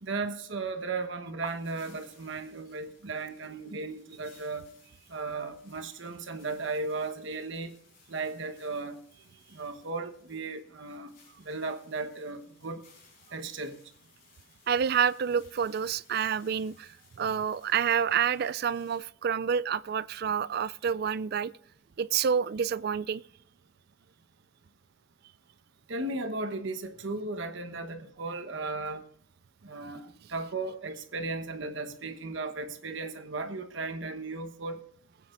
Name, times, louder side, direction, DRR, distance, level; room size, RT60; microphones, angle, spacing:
voice 1, 0.0-4.7 5.1-7.7 8.1-9.0 9.5-12.8 13.3-13.8 25.9-29.0 29.6-34.8, right 3 dB, 65° right, 1.1 m, -36 dB
sound 1, 1.4-19.0, left 4 dB, 45° left, 4.6 m, -62 dB
voice 2, 14.7-21.5 22.0-23.2, right 7 dB, 50° right, 0.3 m, -28 dB
20.0 x 9.4 x 2.5 m
head